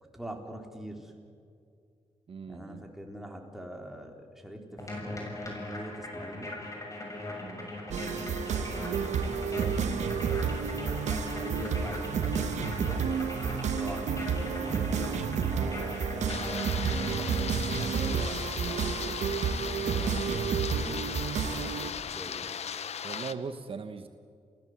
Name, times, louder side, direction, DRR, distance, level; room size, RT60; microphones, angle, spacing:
voice 1, 0.1-1.1 2.5-6.6 8.5-13.1 13.5-19.5 19.8-22.5, right 1 dB, 5° right, 2 dB, 3.9 m, -44 dB
voice 2, 2.3-2.9 7.4-7.7 19.8-20.5 23.0-24.1, right 5 dB, 50° right, 9 dB, 1.1 m, -41 dB
sound 1, 4.8-17.6, left 2 dB, 25° left, 6.9 m, -40 dB
sound 2, 7.9-21.9, right 6 dB, 80° right, 1.3 m, -31 dB
sound 3, 16.3-23.3, left 8 dB, 65° left, 0.9 m, -37 dB
28.5 x 16.0 x 8.0 m, 2.4 s
cardioid pair, 80°, 12 cm